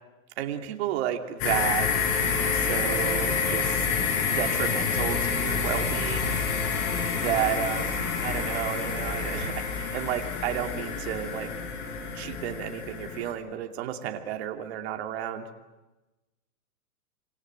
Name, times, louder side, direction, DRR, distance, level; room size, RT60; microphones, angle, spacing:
voice 1, 0.4-1.9 2.1-3.9 4.4-6.4 7.1-11.5 12.1-15.5, right 11 dB, 45° right, 5 dB, 2.7 m, -32 dB
sound 1, 1.4-13.3, left 5 dB, 35° left, 5.7 m, -28 dB
26.5 x 25.5 x 7.9 m, 1.1 s
hypercardioid pair, 155°, 44 cm